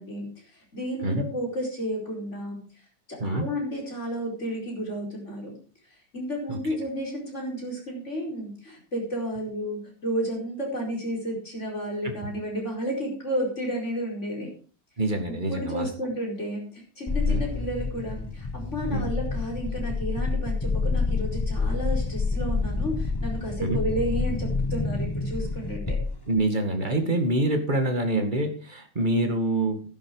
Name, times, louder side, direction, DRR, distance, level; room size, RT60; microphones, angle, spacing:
voice 1, 0.0-2.6 3.1-5.6 6.1-14.5 15.3-26.0, equal, 40° left, -1 dB, 5.1 m, -32 dB
voice 2, 15.0-15.9 17.3-17.4 18.9-19.0 23.6-23.8 26.3-29.8, right 1 dB, 25° right, 5 dB, 2.1 m, -26 dB
sound 1, 17.1-26.4, left 4 dB, 20° left, 0.8 m, -28 dB
12.0 x 11.0 x 4.8 m, 0.39 s
omnidirectional pair, 1.8 m